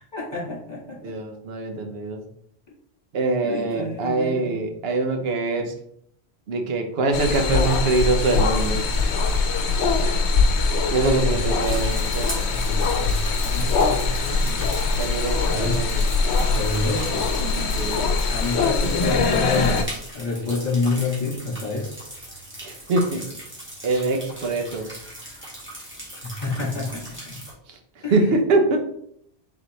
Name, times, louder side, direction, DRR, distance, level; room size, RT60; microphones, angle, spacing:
voice 1, 0.0-1.1 3.4-4.6 11.2-11.4 12.5-14.7 15.4-15.9 16.5-17.3 18.3-21.9 26.2-27.4 28.0-28.2, left 3 dB, 40° left, -5 dB, 2.0 m, -29 dB
voice 2, 1.0-2.2 3.1-5.7 6.5-8.8 10.9-12.5 15.0-16.0 17.7-18.1 22.6-23.2 23.8-24.8 27.7-27.8 28.1-28.8, right 3 dB, 70° right, 4 dB, 1.0 m, -24 dB
sound 1, 7.1-19.8, left 4 dB, 85° left, 0.9 m, -22 dB
sound 2, 11.6-27.5, right 1 dB, 10° right, 1.5 m, -39 dB
4.0 x 4.0 x 3.1 m, 0.69 s
omnidirectional pair, 1.1 m